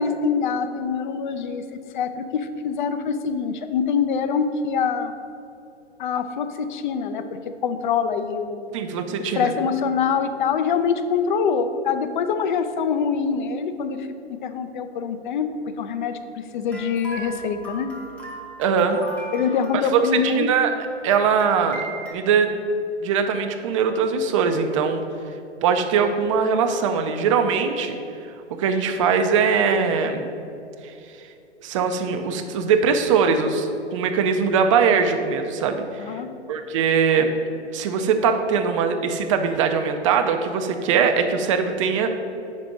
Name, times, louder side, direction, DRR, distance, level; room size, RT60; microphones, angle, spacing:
voice 1, 0.0-5.1 6.0-8.7 9.4-14.1 14.4-15.5 15.8-16.2 16.5-17.9 19.3-20.5 36.0-36.3, left 6 dB, 45° left, 9 dB, 0.5 m, -24 dB
voice 2, 8.7-9.5 18.6-19.0 19.9-20.7 21.0-22.5 23.0-25.0 25.6-28.0 28.6-30.3 31.6-36.0 36.5-37.3 37.7-42.1, right 6 dB, 30° right, 6 dB, 0.4 m, -21 dB
sound 1, 16.7-22.1, right 1 dB, 5° left, 0.7 m, -38 dB
5.3 x 4.1 x 6.1 m, 2.6 s
figure-of-eight pair, 115°, 34 cm